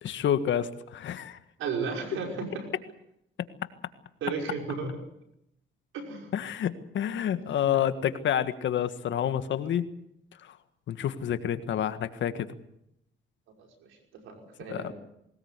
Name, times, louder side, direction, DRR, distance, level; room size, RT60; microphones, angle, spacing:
voice 1, 0.0-1.4 6.3-9.9 10.4-10.5 10.9-12.5 14.7-14.9, left 9 dB, 70° left, 11 dB, 1.7 m, -29 dB
voice 2, 1.6-2.6 4.2-4.9 5.9-6.3 7.7-7.8 13.6-13.7 14.2-15.0, right 5 dB, 85° right, 3 dB, 5.5 m, -34 dB
21.0 x 19.5 x 8.2 m, 0.78 s
cardioid pair, 90°, 20 cm